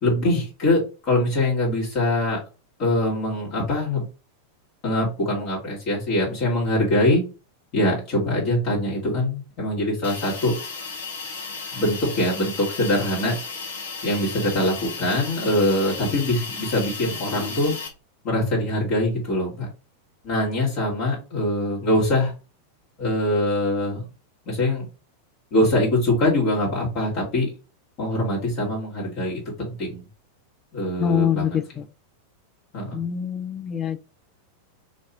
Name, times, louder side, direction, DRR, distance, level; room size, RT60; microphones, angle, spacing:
voice 1, 0.0-2.4 2.8-4.1 4.8-7.2 7.7-10.5 11.7-13.3 14.0-17.8 18.2-19.7 20.2-22.3 23.0-24.0 24.5-24.9 25.5-27.5 28.0-30.0 30.7-31.6 32.7-33.0, left 1 dB, 40° left, 1.7 m, -23 dB
Hiss, 10.0-17.9, left 4 dB, 65° left, 1.1 m, -34 dB
voice 2, 31.0-31.8 32.9-34.0, left 8 dB, 25° left, 0.4 m, -24 dB
2.9 x 2.8 x 4.4 m
figure-of-eight pair, 90°, 0 cm